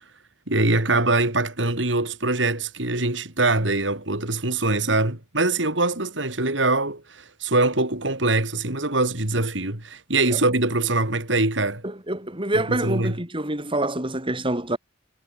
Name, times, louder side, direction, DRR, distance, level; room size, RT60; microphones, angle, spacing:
voice 1, 0.5-11.8 12.5-13.2, right 2 dB, 65° right, 4.1 m, -23 dB
voice 2, 12.1-14.8, right 1 dB, 25° right, 5.7 m, -26 dB
head